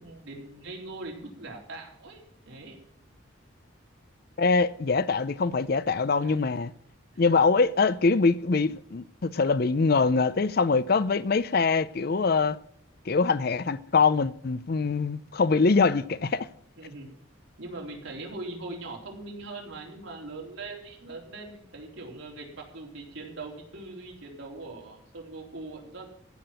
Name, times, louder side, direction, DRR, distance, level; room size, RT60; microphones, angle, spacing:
voice 1, 0.0-2.8 6.2-6.4 7.1-7.2 16.8-17.1 17.6-26.0, right 2 dB, 75° right, 3.8 m, -41 dB
voice 2, 4.4-6.7 7.2-12.6 13.1-16.5, left 4 dB, 50° left, 0.5 m, -23 dB
15.5 x 6.0 x 9.0 m
head